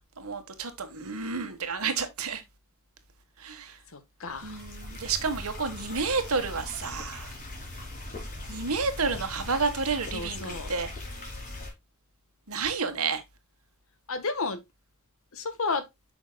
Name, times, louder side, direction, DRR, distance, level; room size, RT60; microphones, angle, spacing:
voice 1, 0.0-2.4 3.4-3.8 4.4-7.4 8.5-10.9 12.5-13.2, right 4 dB, 70° right, 1.6 m, -30 dB
voice 2, 3.9-4.6 10.1-10.7 14.1-14.6 15.3-15.8, left 4 dB, 65° left, 1.5 m, -32 dB
sound 1, 4.3-11.7, left 1 dB, 40° left, 3.7 m, -40 dB
8.6 x 6.1 x 2.3 m
head